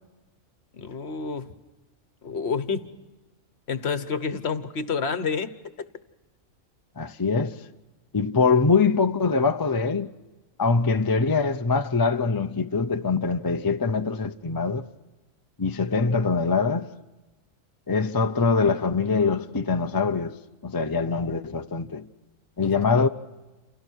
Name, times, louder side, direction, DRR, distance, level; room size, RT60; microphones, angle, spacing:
voice 1, 0.7-1.5 2.2-2.9 3.7-5.9 22.6-22.7 23.0-23.1, left 5 dB, 55° left, 1.3 m, -29 dB
voice 2, 7.0-7.7 8.1-10.1 10.6-14.9 15.6-16.9 17.9-20.4 20.6-22.1 22.6-23.1, left 4 dB, 25° left, 0.5 m, -23 dB
29.5 x 28.0 x 4.6 m
omnidirectional pair, 1.4 m